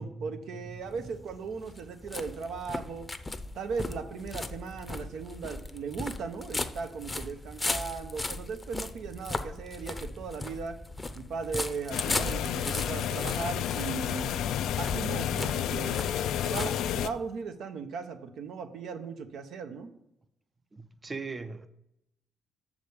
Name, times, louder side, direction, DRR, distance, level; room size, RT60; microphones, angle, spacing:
voice 1, 0.0-3.1 3.5-10.8 11.1-14.4 14.7-16.0 16.4-19.9, right 5 dB, 75° right, 0.8 m, -37 dB
sound 1, 0.8-17.3, left 2 dB, 20° left, 0.6 m, -38 dB
sound 2, 11.9-17.1, left 10 dB, 80° left, 0.3 m, -31 dB
voice 2, 20.7-21.7, right 4 dB, 25° right, 0.5 m, -39 dB
6.6 x 5.0 x 6.8 m
cardioid pair, 90°, 0 cm